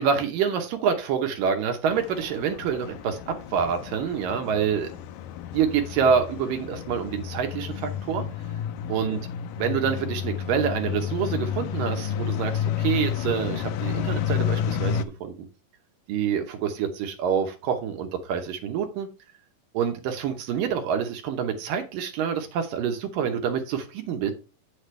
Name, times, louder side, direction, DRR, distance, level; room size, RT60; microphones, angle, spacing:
voice 1, 0.0-4.9 5.5-8.2 8.9-9.2 9.6-15.5 16.1-19.1 19.7-24.3, right 7 dB, 80° right, 5 dB, 2.7 m, -27 dB
sound 1, 1.9-15.1, left 9 dB, 80° left, 2.3 m, -31 dB
8.3 x 7.1 x 3.3 m, 0.31 s
omnidirectional pair, 4.0 m